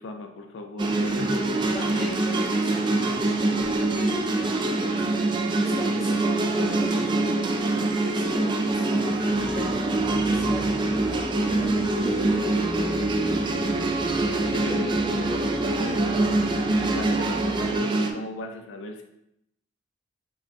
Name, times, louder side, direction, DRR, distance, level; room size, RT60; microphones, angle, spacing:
voice 1, 0.0-1.6 14.4-16.2 16.9-19.0, left 2 dB, 85° left, 5 dB, 0.4 m, -37 dB
sound 1, 0.8-18.1, right 2 dB, 25° right, 0.3 m, -24 dB
voice 2, 1.5-3.4 3.8-7.3 7.8-9.7 10.0-12.6, equal, ahead, -7 dB, 1.0 m, -37 dB
sound 2, 9.3-17.8, equal, 70° right, 1.1 m, -40 dB
3.7 x 2.4 x 3.4 m, 0.78 s
head